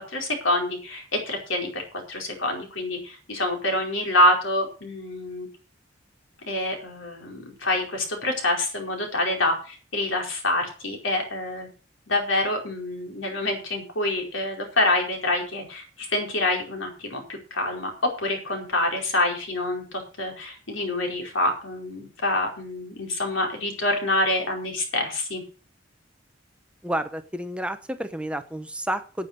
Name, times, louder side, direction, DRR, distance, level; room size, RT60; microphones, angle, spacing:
voice 1, 0.1-1.8 2.1-5.5 6.5-11.7 12.1-17.9 18.2-19.8 20.2-25.4, left 1 dB, 75° left, 2 dB, 4.8 m, -26 dB
voice 2, 26.8-29.3, right 1 dB, 5° right, 9 dB, 0.8 m, -30 dB
9.7 x 8.6 x 6.6 m, 0.37 s
head